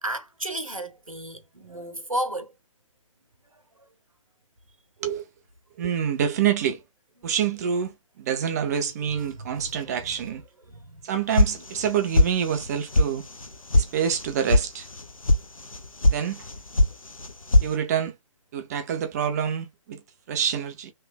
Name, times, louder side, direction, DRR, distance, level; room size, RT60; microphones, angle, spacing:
voice 1, 0.0-2.5 3.5-3.9 7.2-7.3 9.1-10.4 10.7-11.0 11.5-11.7, right 1 dB, 90° right, 1.1 m, -34 dB
voice 2, 5.8-6.8 7.2-10.4 11.0-13.2 13.7-14.9 16.1-16.5 17.6-18.1 18.5-20.0 20.3-20.9, right 8 dB, 30° right, 0.6 m, -27 dB
sound 1, 11.4-11.9 12.1-12.7 12.9-13.1 13.4-13.9 14.1-14.6 14.9-15.4 15.7-16.2 16.4-16.9 17.2-17.7, left 1 dB, 90° left, 0.7 m, -19 dB
3.3 x 3.2 x 2.3 m
figure-of-eight pair, 130°, 17 cm